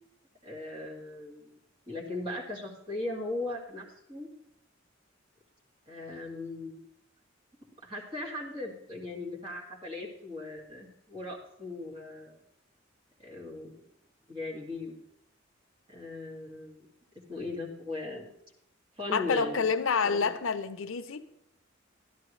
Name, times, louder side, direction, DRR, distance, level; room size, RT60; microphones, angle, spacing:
voice 1, 0.4-1.5 1.9-4.3 5.9-6.8 7.8-12.4 13.2-13.8 14.3-15.0 15.9-16.9 17.3-18.3 19.0-19.7 20.0-20.3, left 2 dB, 25° right, -3 dB, 2.4 m, -38 dB
voice 2, 19.1-21.3, left 5 dB, 90° left, 9 dB, 0.7 m, -28 dB
12.5 x 11.0 x 3.2 m, 0.78 s
head